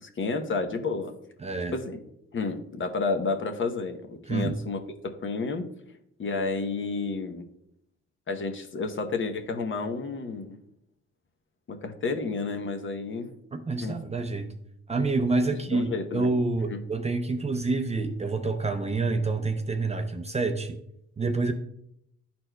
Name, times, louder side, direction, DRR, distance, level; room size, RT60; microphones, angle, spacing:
voice 1, 0.0-1.1 1.7-2.0 2.3-5.7 6.2-7.4 8.3-10.6 11.7-13.3 13.8-14.0 15.7-16.3 16.7-16.8, left 4 dB, 40° left, 6 dB, 0.8 m, -31 dB
voice 2, 1.4-1.7 4.3-4.5 13.5-14.5 14.9-20.8 21.2-21.5, right 3 dB, 20° right, 6 dB, 0.5 m, -27 dB
11.0 x 4.3 x 2.2 m, 0.75 s
cardioid pair, 90°, 30 cm